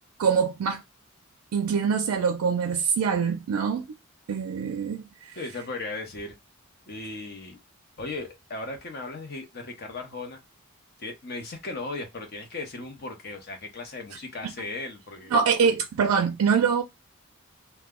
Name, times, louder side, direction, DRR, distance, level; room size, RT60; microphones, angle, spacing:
voice 1, 0.2-0.8 1.5-3.9 4.3-5.4 15.3-16.8, right 6 dB, 85° right, 0.4 m, -24 dB
voice 2, 5.4-6.4 6.9-7.6 8.0-10.4 11.0-15.3, left 3 dB, 45° left, 0.7 m, -37 dB
2.1 x 2.0 x 3.5 m
head